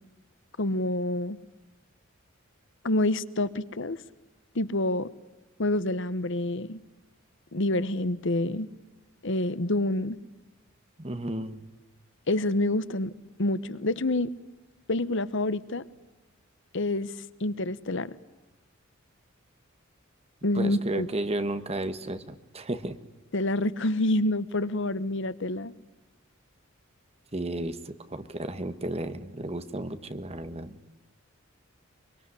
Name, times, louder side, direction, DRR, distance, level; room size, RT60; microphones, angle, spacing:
voice 1, 0.6-1.4 2.8-4.0 4.5-5.1 5.6-6.8 7.5-8.7 9.2-10.2 12.3-13.1 13.4-14.3 14.9-15.8 16.7-17.1 17.4-18.1 20.4-21.1 23.3-25.7, left 1 dB, 65° left, 15 dB, 1.1 m, -27 dB
voice 2, 11.0-11.6 20.5-23.0 27.3-30.8, right 1 dB, 30° right, 10 dB, 1.5 m, -33 dB
24.5 x 24.0 x 9.9 m, 1.1 s
head